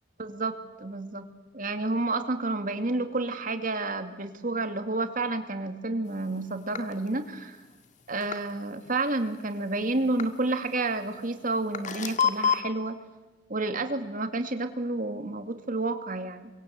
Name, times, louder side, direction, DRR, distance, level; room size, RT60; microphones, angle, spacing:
voice 1, 0.2-1.3 1.5-7.6 8.1-13.0 13.5-16.5, right 2 dB, 50° right, 7 dB, 2.4 m, -30 dB
sound 1, 6.1-8.6 9.0-12.6, left 7 dB, 45° left, 1.9 m, -31 dB
28.5 x 24.0 x 8.4 m, 1.1 s
head